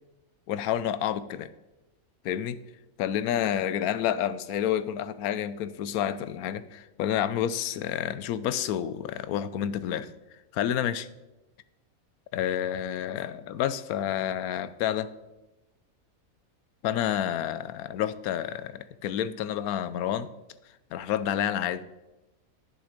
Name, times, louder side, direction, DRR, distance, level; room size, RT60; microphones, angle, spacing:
voice 1, 0.5-1.5 2.2-2.6 3.0-10.1 10.5-11.1 12.3-15.1 16.8-20.3 20.9-21.8, left 10 dB, 85° left, 1.1 m, -29 dB
10.5 x 7.0 x 5.0 m
omnidirectional pair, 1.5 m